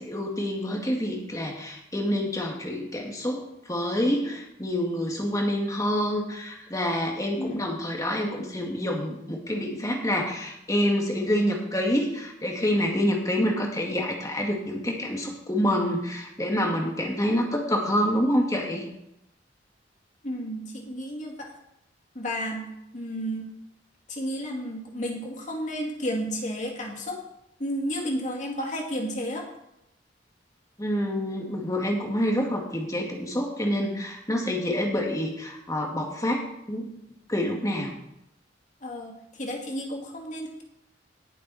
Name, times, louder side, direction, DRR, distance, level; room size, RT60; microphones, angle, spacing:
voice 1, 0.0-18.9 30.8-36.9 37.3-38.0, equal, 20° left, 1 dB, 2.1 m, -27 dB
voice 2, 7.4-7.7 20.2-21.5 22.1-22.7 22.9-23.5 24.1-27.2 27.6-29.5 38.8-40.6, equal, 40° left, 0 dB, 2.5 m, -32 dB
18.5 x 7.5 x 4.2 m, 0.82 s
head